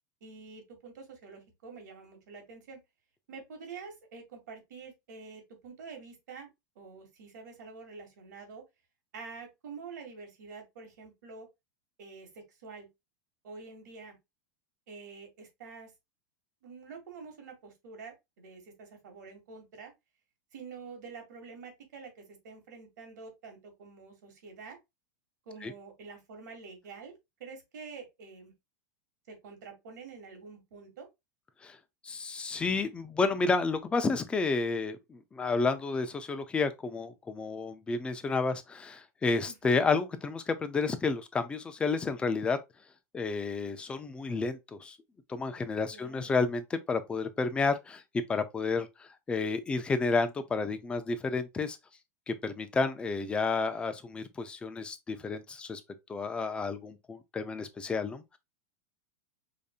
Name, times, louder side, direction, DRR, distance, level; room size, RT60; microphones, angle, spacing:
voice 1, 0.2-2.8 3.3-6.5 6.8-8.6 9.1-11.5 12.0-12.9 13.4-14.2 14.9-15.9 16.6-19.9 20.5-24.8 25.5-27.1 27.4-28.5 29.3-31.1 39.5-39.8 45.9-46.3, right 5 dB, 85° right, 1.8 m, -47 dB
voice 2, 32.0-42.6 43.1-45.0 45.3-51.8 52.3-55.8 56.1-58.4, left 4 dB, 10° left, 0.4 m, -31 dB
5.1 x 2.6 x 2.4 m
supercardioid pair, 155°, 9 cm